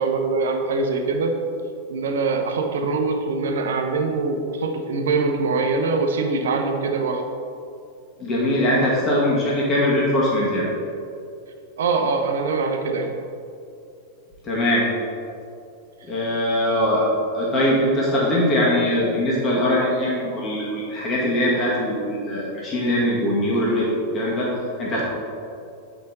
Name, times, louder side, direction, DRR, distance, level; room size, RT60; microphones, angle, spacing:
voice 1, 0.0-1.4 1.9-7.2 11.8-13.1, right 4 dB, 60° right, 4 dB, 0.8 m, -23 dB
voice 2, 8.2-10.7 14.4-14.8 16.0-17.1 17.3-24.5 24.8-25.0, left 1 dB, 25° left, -5 dB, 1.8 m, -21 dB
8.4 x 5.2 x 4.0 m, 2.6 s
figure-of-eight pair, 90°, 0 cm